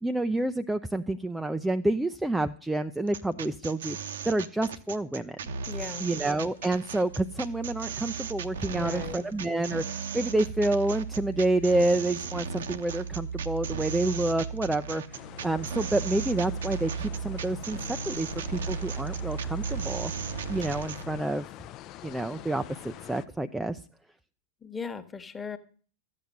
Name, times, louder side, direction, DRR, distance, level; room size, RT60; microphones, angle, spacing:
voice 1, 0.0-5.5 6.0-17.8 18.1-20.1 20.5-21.5 22.0-23.8, right 2 dB, 5° right, 9 dB, 0.5 m, -28 dB
sound 1, 3.1-21.0, right 6 dB, 65° right, 0.9 m, -37 dB
voice 2, 5.7-6.1 8.7-9.3 24.6-25.6, left 5 dB, 15° left, 10 dB, 1.3 m, -38 dB
sound 2, 6.2-21.2, right 6 dB, 90° left, 0.9 m, -38 dB
sound 3, 15.1-23.3, left 13 dB, 35° left, 0.6 m, -45 dB
13.5 x 7.9 x 7.5 m, 0.42 s
figure-of-eight pair, 90°, 0 cm